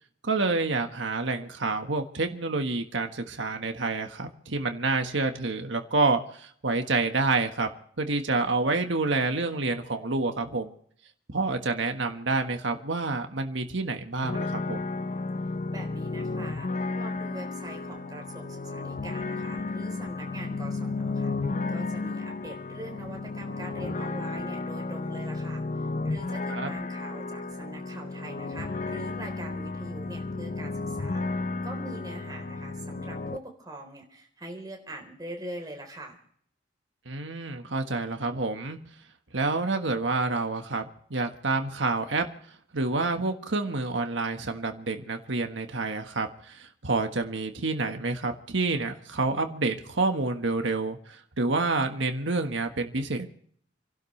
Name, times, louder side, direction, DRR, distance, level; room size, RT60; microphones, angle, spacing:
voice 1, 0.2-7.7 8.0-10.7 11.3-14.8 26.5-26.7 37.0-38.8 39.3-42.2 42.7-51.0 51.4-53.3, right 3 dB, 80° right, 5 dB, 1.5 m, -28 dB
sound 1, 14.2-33.4, left 3 dB, 40° left, 0.6 m, -33 dB
voice 2, 15.7-21.3 21.7-36.2, right 1 dB, 20° right, 2 dB, 3.8 m, -43 dB
29.0 x 12.0 x 3.3 m, 0.64 s
head